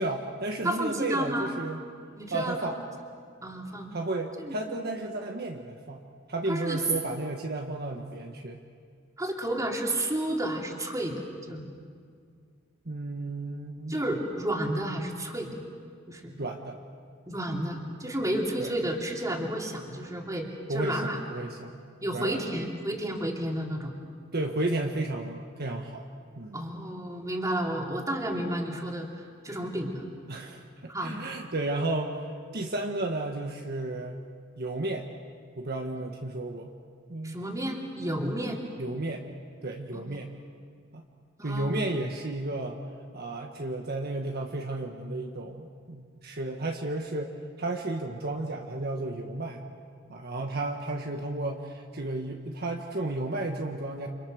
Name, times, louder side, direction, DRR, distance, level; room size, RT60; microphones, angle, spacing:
voice 1, 0.0-1.8 2.3-2.8 3.9-6.0 6.3-8.6 12.8-14.0 16.4-16.8 18.6-18.7 20.7-21.8 22.1-22.4 24.3-26.0 26.4-26.6 30.3-34.2 34.6-35.1 35.6-36.7 37.1-37.4 38.8-39.2 39.6-40.3 40.9-41.0 41.4-42.8 43.1-49.6 50.1-54.1, right 2 dB, 50° right, 2 dB, 1.5 m, -33 dB
voice 2, 0.6-1.5 2.2-2.5 3.4-3.9 4.4-4.6 6.5-6.8 9.2-11.6 13.9-15.6 16.1-16.4 17.3-21.2 22.0-23.9 26.5-29.1 29.4-30.1 30.9-31.2 37.2-38.6 39.9-40.0 41.4-41.7, right 1 dB, 15° right, 0 dB, 3.1 m, -31 dB
29.5 x 27.0 x 6.5 m, 2.1 s
head